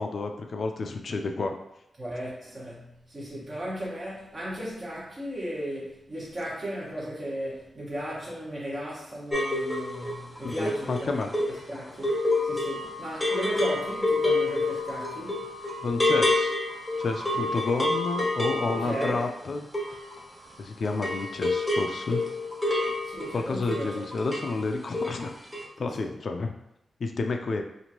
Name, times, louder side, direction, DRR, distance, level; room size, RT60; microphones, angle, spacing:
voice 1, 0.0-1.6 10.4-11.3 15.8-16.6 17.0-19.6 20.6-22.2 23.3-25.3 25.8-26.5 27.0-27.6, left 3 dB, 60° left, 0.3 m, -30 dB
voice 2, 2.0-11.3 11.7-15.5 18.7-19.3 23.0-24.1 25.8-26.2, equal, 40° right, 1.2 m, -36 dB
sound 1, 9.3-20.6 20.9-24.6 24.8-25.3 25.5-25.6, left 2 dB, 5° left, 0.7 m, -28 dB
2.9 x 2.5 x 2.9 m
cardioid pair, 85°, 0 cm